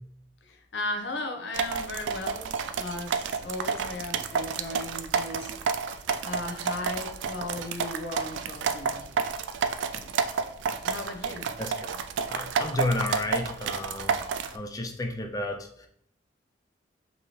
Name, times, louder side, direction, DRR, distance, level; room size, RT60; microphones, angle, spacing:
voice 1, 0.4-5.5 6.2-9.0 10.8-11.5, left 2 dB, 70° left, 4 dB, 0.7 m, -36 dB
sound 1, 1.5-14.6, right 6 dB, 80° right, 0.3 m, -30 dB
voice 2, 11.6-11.9 12.3-14.2 14.5-15.9, left 2 dB, 20° left, 5 dB, 0.4 m, -32 dB
5.3 x 2.9 x 3.1 m, 0.69 s
head